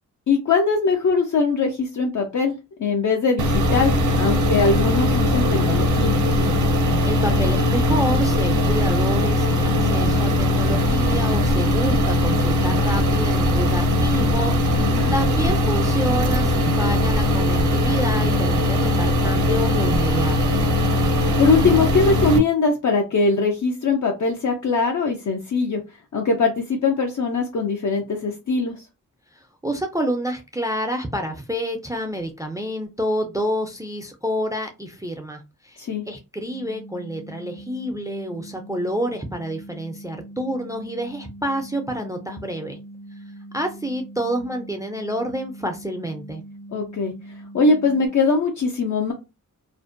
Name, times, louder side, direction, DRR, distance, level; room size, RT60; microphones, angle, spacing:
voice 1, 0.3-6.2 14.8-15.1 21.4-25.8 26.1-28.8 35.8-36.0 46.7-47.1 47.5-49.1, left 4 dB, 60° left, 0.5 m, -21 dB
sound 1, 3.4-22.4, left 1 dB, 60° right, 0.5 m, -20 dB
voice 2, 6.8-20.5 29.4-35.8 36.1-42.8 43.5-46.4, equal, 10° right, 0.4 m, -28 dB
sound 2, 36.4-48.1, right 1 dB, 85° left, 1.1 m, -42 dB
2.5 x 2.1 x 2.5 m
wide cardioid pair, 80°, 33 cm